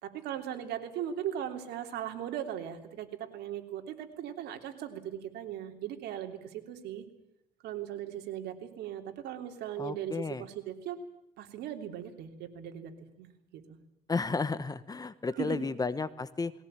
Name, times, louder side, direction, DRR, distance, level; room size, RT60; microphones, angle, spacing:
voice 1, 0.0-7.0 7.6-11.0 11.4-12.9 13.2-13.8 15.4-15.7, right 10 dB, 80° right, 5 dB, 3.2 m, -38 dB
voice 2, 9.8-10.4 14.1-16.5, left 4 dB, 20° left, 15 dB, 1.2 m, -33 dB
20.5 x 18.0 x 9.0 m, 0.87 s
cardioid pair, 110°, 17 cm